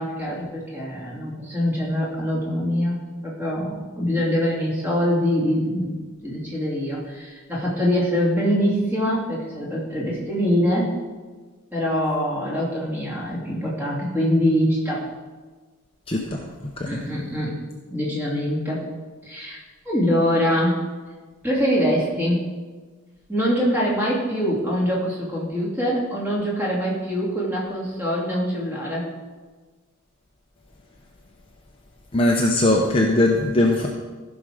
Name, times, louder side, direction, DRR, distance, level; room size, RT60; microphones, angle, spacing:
voice 1, 0.0-5.9 6.2-10.9 11.7-15.0 16.8-17.5 17.9-18.8 19.2-19.6 19.8-20.8 21.4-22.4 23.3-29.1, equal, 10° right, -5 dB, 2.7 m, -24 dB
voice 2, 16.1-16.5 16.8-17.0 32.1-33.9, left 1 dB, 25° left, 0 dB, 0.8 m, -20 dB
15.0 x 6.1 x 5.0 m, 1.4 s
head